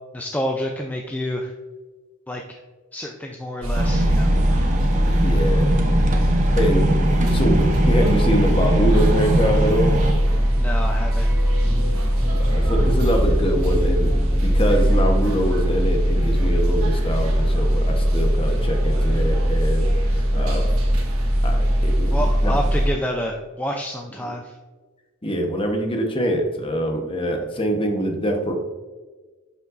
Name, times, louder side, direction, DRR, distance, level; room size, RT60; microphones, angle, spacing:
voice 1, 0.1-1.5 2.3-2.4 2.9-4.3 10.6-11.3 22.1-24.5, equal, 5° left, 2 dB, 0.5 m, -28 dB
sound 1, 3.6-22.9, equal, 75° right, 1.5 m, -20 dB
sound 2, 3.8-10.1, right 1 dB, 35° right, 0.9 m, -23 dB
voice 2, 5.0-5.8 6.6-6.9 7.2-10.0 12.4-14.1 14.4-20.7 21.4-22.1 22.4-22.6 24.2-24.3 25.2-28.5, equal, 25° left, 3 dB, 1.1 m, -24 dB
sound 3, 10.2-18.1 18.3-18.4, equal, 10° right, 1.3 m, -32 dB
11.0 x 5.5 x 2.6 m, 1.3 s
head